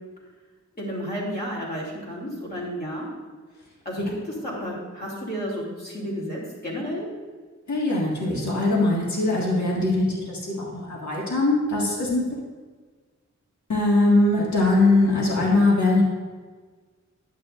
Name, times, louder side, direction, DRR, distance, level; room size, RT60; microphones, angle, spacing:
voice 1, 0.8-3.1 3.8-4.1 4.4-7.1, equal, 30° left, -5 dB, 2.8 m, -32 dB
voice 2, 7.7-12.3 13.7-16.0, left 2 dB, 70° left, -4 dB, 1.9 m, -21 dB
11.0 x 9.1 x 2.5 m, 1.5 s
wide cardioid pair, 110°, 29 cm